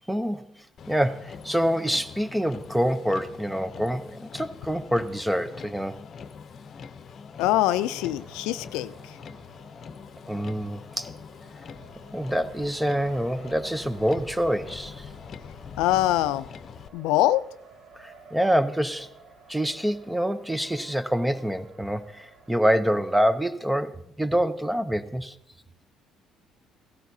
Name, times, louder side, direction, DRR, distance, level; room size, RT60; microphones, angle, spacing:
voice 1, 0.1-0.5 0.9-6.0 10.3-11.1 12.1-15.1 17.9-19.1 19.5-25.3, equal, 5° right, 0.6 m, -26 dB
Motor vehicle (road), 0.8-16.9, left 6 dB, 50° left, 0.7 m, -43 dB
voice 2, 7.4-8.9 15.8-16.5 16.9-17.4, left 14 dB, 90° left, 0.4 m, -23 dB
Race car auto racing, 7.5-23.4, right 4 dB, 65° right, 3.0 m, -52 dB
16.5 x 12.5 x 2.7 m
cardioid pair, 95°, 0 cm